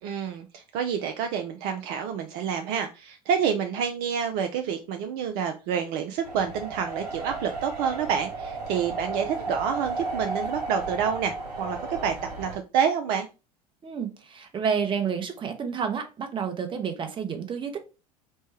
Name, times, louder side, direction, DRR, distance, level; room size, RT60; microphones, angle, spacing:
voice 1, 0.0-13.3, right 7 dB, 50° right, 6 dB, 0.5 m, -28 dB
sound 1, 6.2-12.6, right 3 dB, 85° right, 1.0 m, -34 dB
voice 2, 13.8-17.8, right 6 dB, 25° right, 6 dB, 0.8 m, -30 dB
4.2 x 2.2 x 3.2 m, 0.30 s
figure-of-eight pair, 75°, 21 cm